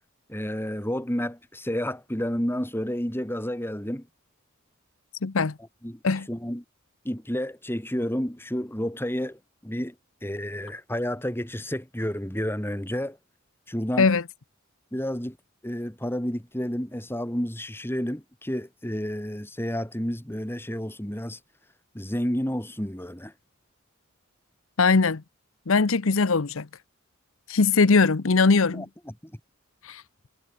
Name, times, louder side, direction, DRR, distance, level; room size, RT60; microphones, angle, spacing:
voice 1, 0.3-4.1 5.8-6.0 6.3-6.6 7.0-9.9 10.2-13.2 13.7-14.1 14.9-15.4 15.6-21.4 21.9-23.3 28.7-29.3, equal, 10° left, 2.7 m, -30 dB
voice 2, 5.2-5.5 6.0-6.3 14.0-14.2 24.8-25.2 25.7-26.7 27.5-28.8 29.8-30.0, left 4 dB, 70° left, 0.8 m, -20 dB
head